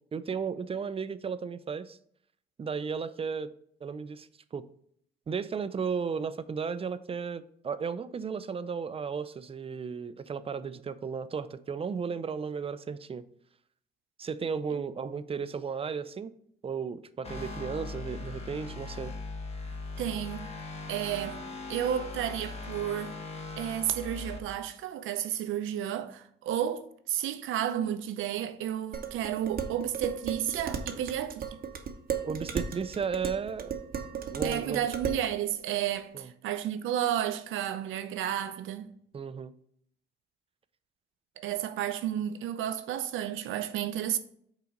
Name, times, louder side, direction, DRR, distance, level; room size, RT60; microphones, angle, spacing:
voice 1, 0.1-2.0 2.6-3.5 3.8-4.6 5.3-13.2 14.2-16.3 16.6-19.1 32.2-34.8 36.1-36.3 39.1-39.5, right 6 dB, 30° right, 0.4 m, -34 dB
sound 1, 17.2-24.4, left 3 dB, 30° left, 1.2 m, -40 dB
voice 2, 20.0-20.5 20.9-21.4 21.7-23.2 23.6-31.6 34.4-38.9 41.4-44.2, right 10 dB, 85° right, 0.6 m, -32 dB
Dishes pots and pans, 28.9-35.3, right 7 dB, 50° right, 0.8 m, -35 dB
5.6 x 3.8 x 5.2 m
cardioid pair, 90°, 20 cm